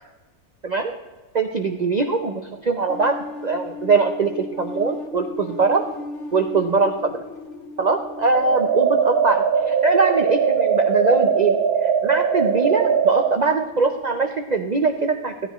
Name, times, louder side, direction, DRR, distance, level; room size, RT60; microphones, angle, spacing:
voice 1, 1.3-5.8 6.3-7.2 7.8-15.3, right 4 dB, 50° right, 5 dB, 0.5 m, -22 dB
sound 1, 2.9-9.8, left 3 dB, 65° left, 0.9 m, -36 dB
sound 2, 8.3-13.4, right 7 dB, 85° right, 1.1 m, -20 dB
16.0 x 10.5 x 3.0 m, 1.3 s
omnidirectional pair, 1.5 m